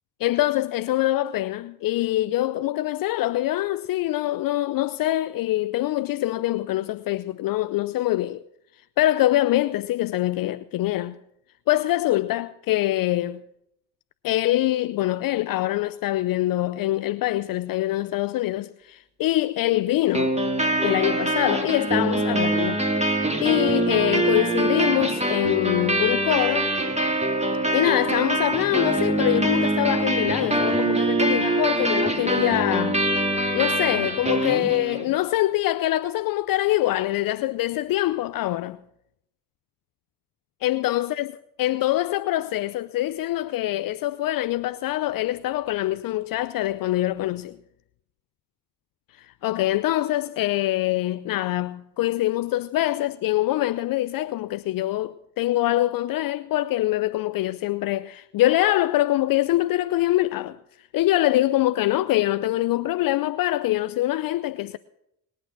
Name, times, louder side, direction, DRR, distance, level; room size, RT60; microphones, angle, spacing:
voice 1, 0.2-8.4 9.0-11.2 11.7-13.4 14.2-20.3 20.8-22.8 23.4-26.7 27.7-33.0 33.5-38.8 40.6-41.3 41.6-47.6 49.1-64.8, left 15 dB, 55° left, 0.6 m, -24 dB
sound 1, 20.1-35.1, right 1 dB, 15° right, 2.8 m, -24 dB
21.0 x 8.8 x 6.1 m
hypercardioid pair, 45°, 40 cm